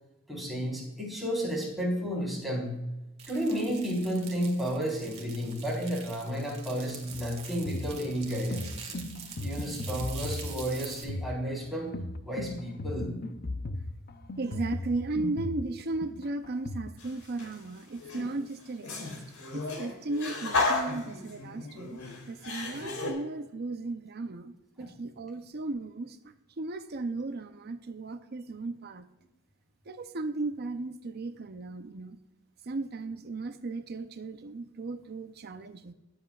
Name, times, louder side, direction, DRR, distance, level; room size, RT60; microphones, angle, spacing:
voice 1, 0.3-2.8 3.3-8.9 9.4-11.9 12.2-13.1 24.8-24.9, equal, ahead, -4 dB, 4.0 m, -32 dB
sound 1, 3.2-11.0, right 6 dB, 30° right, 1.9 m, -45 dB
sound 2, 7.1-16.9, left 2 dB, 45° left, 0.6 m, -37 dB
voice 2, 14.4-19.2 19.5-22.0 22.3-29.0 29.9-32.2 32.7-35.9, right 2 dB, 50° right, 9 dB, 0.6 m, -36 dB
sound 3, 17.0-17.6 18.0-23.1, left 3 dB, 75° left, 3.5 m, -33 dB
20.0 x 7.8 x 2.4 m, 0.97 s
head